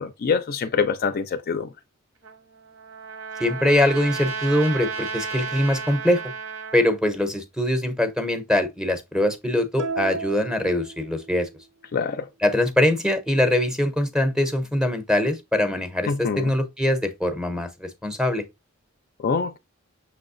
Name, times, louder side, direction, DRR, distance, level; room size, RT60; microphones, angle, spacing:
voice 1, 0.0-1.7 11.9-12.3 16.1-16.5 19.2-19.6, left 5 dB, 45° left, 0.4 m, -25 dB
Trumpet, 2.2-6.9, right 6 dB, 90° right, 1.1 m, -33 dB
voice 2, 3.4-6.2 6.7-11.5 12.4-18.5, left 1 dB, 5° right, 0.6 m, -23 dB
sound 1, 9.8-11.6, right 4 dB, 60° right, 0.3 m, -33 dB
6.0 x 3.1 x 2.5 m
head